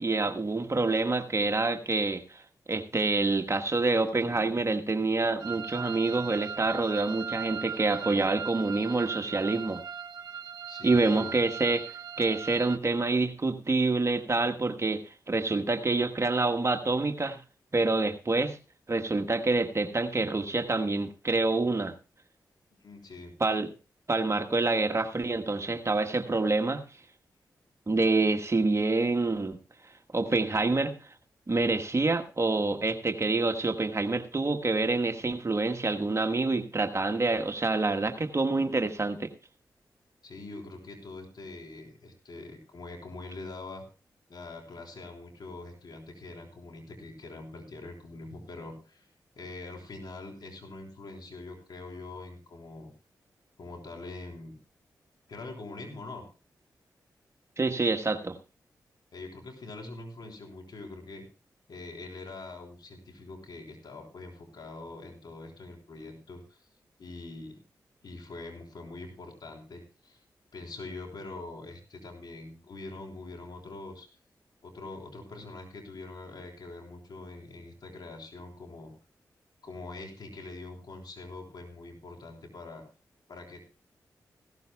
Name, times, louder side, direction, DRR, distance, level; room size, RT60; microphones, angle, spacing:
voice 1, 0.0-2.4 2.7-9.8 10.8-11.8 12.2-17.4 17.7-18.6 18.9-21.9 23.4-23.7 24.1-26.8 27.9-29.6 30.1-30.9 31.5-39.3 57.6-58.4, right 3 dB, 40° right, 6 dB, 1.2 m, -27 dB
sound 1, 5.4-12.8, right 7 dB, 60° right, 1.3 m, -39 dB
voice 2, 10.7-11.3 22.8-23.3 40.2-43.8 44.3-49.1 49.4-52.9 53.6-54.6 55.3-56.2 59.1-61.2 61.7-66.7 67.0-67.6 68.0-70.2 70.5-74.1 74.6-78.9 79.6-82.8 83.3-83.6, left 2 dB, 70° left, 2 dB, 3.6 m, -43 dB
16.0 x 13.5 x 2.3 m, 0.32 s
supercardioid pair, 45°, 8 cm